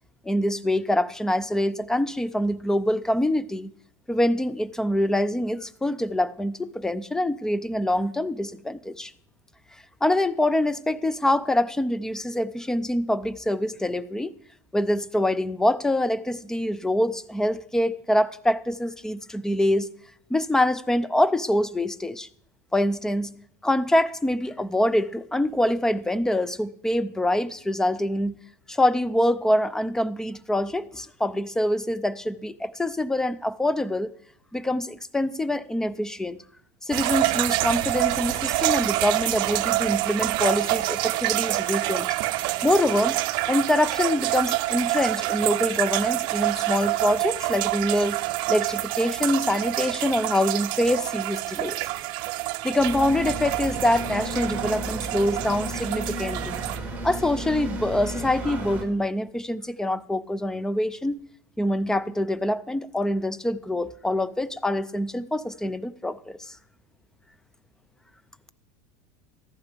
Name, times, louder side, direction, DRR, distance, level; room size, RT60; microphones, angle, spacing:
voice 1, 0.2-3.7 4.1-9.1 10.0-14.3 14.7-19.9 20.3-22.3 22.7-28.4 28.7-34.1 34.5-36.4 36.8-42.1 42.6-43.2 43.5-48.2 48.5-51.8 52.6-56.6 57.0-61.2 61.6-66.6, left 1 dB, 5° left, 0.4 m, -25 dB
sound 1, 36.9-56.8, right 18 dB, 55° right, 0.6 m, -27 dB
sound 2, 52.7-58.8, right 2 dB, 15° right, 2.9 m, -33 dB
14.0 x 11.5 x 3.4 m
supercardioid pair, 130°, 10 cm